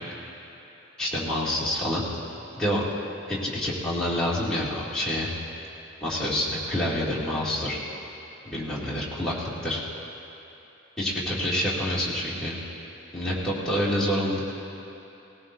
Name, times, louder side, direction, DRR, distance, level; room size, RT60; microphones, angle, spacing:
voice 1, 1.0-2.0 2.6-2.9 3.3-5.3 6.0-7.8 8.5-9.8 11.0-12.6 13.1-14.5, left 1 dB, 5° left, -9 dB, 2.6 m, -27 dB
19.5 x 17.5 x 2.7 m, 3.0 s
head